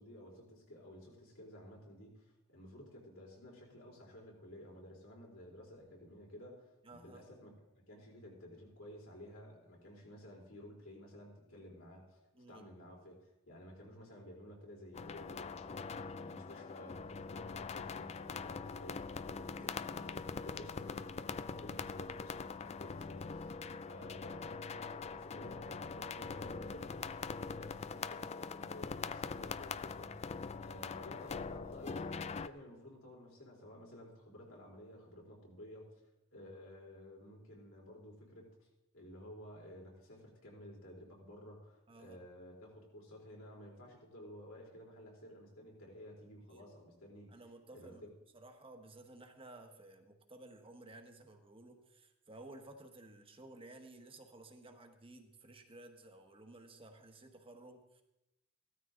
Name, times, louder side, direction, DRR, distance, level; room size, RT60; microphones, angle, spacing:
voice 1, 0.0-12.2 12.5-23.6 23.9-30.2 30.6-35.9 36.3-38.7 38.9-47.3 47.7-48.1, left 1 dB, 75° left, -2 dB, 3.9 m, -53 dB
voice 2, 6.8-7.2 12.3-12.7 19.5-19.8 23.7-23.9 41.9-42.2 46.5-46.7 47.3-48.1 48.3-58.0, right 2 dB, 25° right, 5 dB, 1.3 m, -55 dB
sound 1, 14.9-32.5, left 5 dB, 30° left, 0.4 m, -43 dB
15.5 x 13.0 x 3.9 m, 0.93 s
head